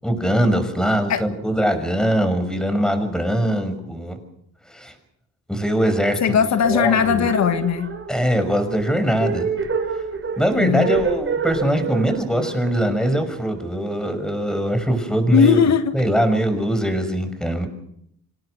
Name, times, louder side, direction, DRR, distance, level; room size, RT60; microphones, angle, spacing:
voice 1, 0.0-4.2 4.7-4.9 5.5-6.4 6.7-7.3 8.1-9.5 9.9-10.0 10.4-15.6 15.9-17.7, equal, ahead, 8 dB, 6.1 m, -22 dB
voice 2, 6.2-7.9 10.6-10.9 15.3-15.9, left 7 dB, 65° left, 8 dB, 1.8 m, -18 dB
sound 1, 6.6-13.8, right 5 dB, 45° right, 5.7 m, -28 dB
26.5 x 18.5 x 6.5 m, 0.74 s
cardioid pair, 90°, 30 cm